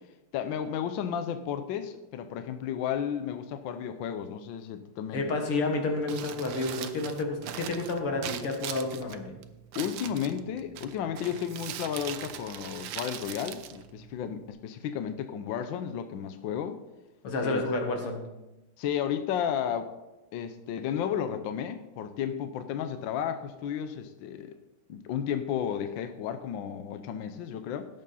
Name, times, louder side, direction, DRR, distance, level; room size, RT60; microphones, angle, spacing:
voice 1, 0.3-5.2 9.7-16.8 17.4-17.6 18.8-19.9 20.3-24.5 24.9-27.9, left 9 dB, 70° left, 10 dB, 1.4 m, -33 dB
voice 2, 5.1-9.4 17.2-18.2, left 2 dB, 85° left, 3 dB, 2.6 m, -30 dB
Crumpling crinkling, 5.9-14.5, right 10 dB, 85° right, 1.6 m, -41 dB
17.5 x 7.4 x 4.1 m, 1.0 s
omnidirectional pair, 2.4 m